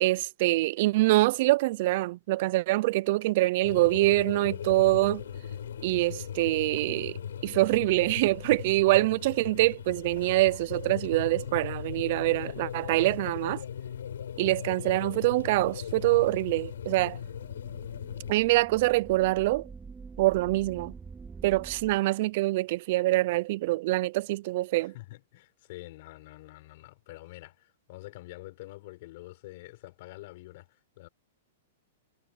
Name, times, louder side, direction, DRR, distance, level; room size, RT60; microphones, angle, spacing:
voice 1, 0.0-5.2 5.8-7.2 7.4-13.6 14.4-17.2 18.3-19.7 20.2-20.9 21.4-24.9, right 19 dB, 45° right, 0.4 m, -25 dB
sound 1, 3.6-18.3, left 9 dB, 90° left, 8.0 m, -38 dB
sound 2, 4.8-22.0, right 5 dB, 10° right, 4.3 m, -51 dB
voice 2, 24.7-31.1, left 19 dB, 50° left, 6.4 m, -47 dB
hypercardioid pair, 160°, 0 cm